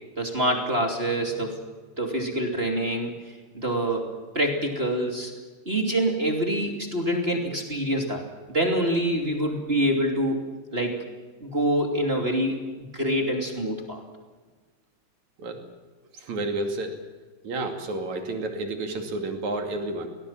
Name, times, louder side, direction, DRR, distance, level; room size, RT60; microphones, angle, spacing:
voice 1, 0.2-1.6 2.0-3.1 3.5-4.0 4.3-5.3 5.7-8.2 8.5-10.4 10.7-11.0 11.4-12.5 12.9-14.0, right 1 dB, 20° right, 2 dB, 2.1 m, -25 dB
voice 2, 16.1-17.0 17.4-20.1, right 2 dB, 50° right, 4 dB, 3.3 m, -30 dB
23.0 x 18.5 x 7.4 m, 1.4 s
omnidirectional pair, 4.8 m